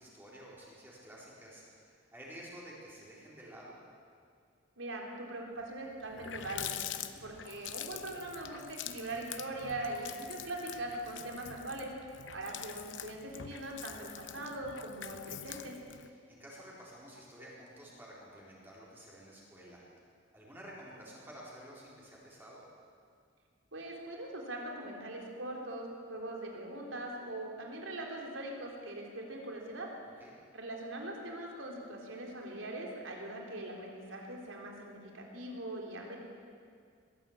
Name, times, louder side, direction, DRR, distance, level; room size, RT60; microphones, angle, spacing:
voice 1, 0.0-3.8 6.9-7.2 16.0-19.8 20.3-22.6 30.2-30.3, equal, 10° right, -6 dB, 4.2 m, -51 dB
voice 2, 4.8-6.8 7.2-11.9 12.3-15.8 23.7-29.9 30.5-36.2, right 1 dB, 85° right, 0 dB, 3.9 m, -41 dB
Water tap faucet, 5.6-5.7 6.0-16.1, left 10 dB, 70° left, 0.9 m, -45 dB
21.0 x 14.5 x 8.8 m, 2.2 s
head